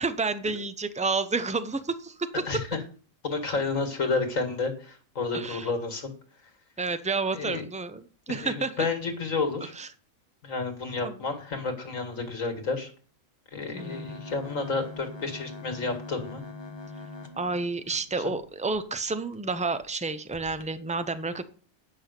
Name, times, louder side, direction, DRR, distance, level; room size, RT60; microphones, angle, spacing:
voice 1, 0.0-2.3 5.3-5.7 6.8-8.7 9.8-9.9 11.0-11.2 13.7-14.2 17.4-21.5, right 3 dB, 10° right, 11 dB, 0.3 m, -30 dB
voice 2, 3.2-6.1 7.3-7.6 8.3-9.7 10.4-12.9 13.5-16.4 18.2-18.3, left 4 dB, 80° left, 5 dB, 2.4 m, -30 dB
sound 1, 13.8-18.8 19.3-19.4 19.7-19.9 20.3-20.7, left 3 dB, 20° left, 1.3 m, -43 dB
9.3 x 5.9 x 6.8 m, 0.40 s
omnidirectional pair, 1.4 m